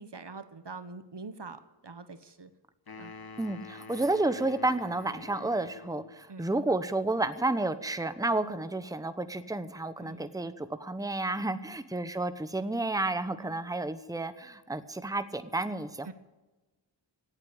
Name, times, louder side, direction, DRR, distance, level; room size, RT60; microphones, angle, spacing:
voice 1, 0.0-2.5 3.0-3.1 6.3-6.4 10.0-10.4 11.5-11.8 13.4-13.6 16.0-16.1, right 3 dB, 70° right, 11 dB, 1.2 m, -45 dB
sound 1, 2.9-6.2, left 4 dB, 55° left, 1.1 m, -47 dB
voice 2, 3.4-16.1, right 2 dB, 10° right, 11 dB, 0.9 m, -31 dB
17.5 x 8.2 x 8.8 m, 1.1 s
wide cardioid pair, 50°, 43 cm